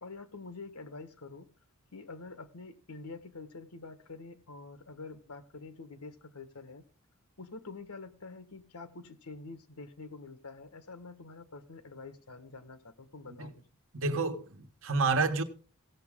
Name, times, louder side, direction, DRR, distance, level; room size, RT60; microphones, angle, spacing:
voice 1, 0.0-1.5 1.9-6.8 7.4-13.6, left 3 dB, 80° left, 1.4 m, -47 dB
voice 2, 13.9-15.4, right 4 dB, 65° right, 1.1 m, -29 dB
16.5 x 7.2 x 3.7 m
head